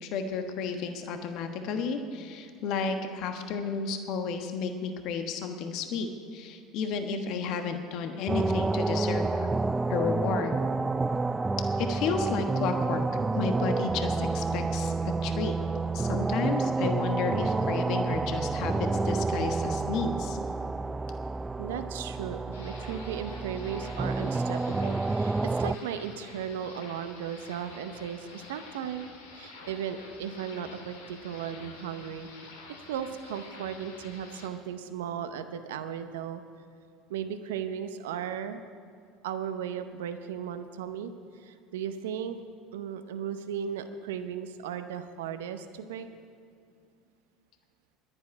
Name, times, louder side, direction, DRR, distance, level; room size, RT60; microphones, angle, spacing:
voice 1, 0.0-9.5 9.9-10.6 11.8-13.0 13.3-14.9 15.2-15.6 15.9-18.8 19.0-20.4, left 5 dB, 60° left, 6 dB, 1.2 m, -32 dB
sound 1, 8.3-25.8, right 3 dB, 20° right, 0.3 m, -29 dB
voice 2, 21.6-29.0 29.3-32.3 32.9-36.4 37.1-38.6 39.2-42.4 42.7-46.1, right 8 dB, 75° right, 9 dB, 0.7 m, -36 dB
sound 2, 22.5-34.5, left 3 dB, 85° left, 1.9 m, -48 dB
11.0 x 9.8 x 9.5 m, 2.3 s
hypercardioid pair, 70°, 0 cm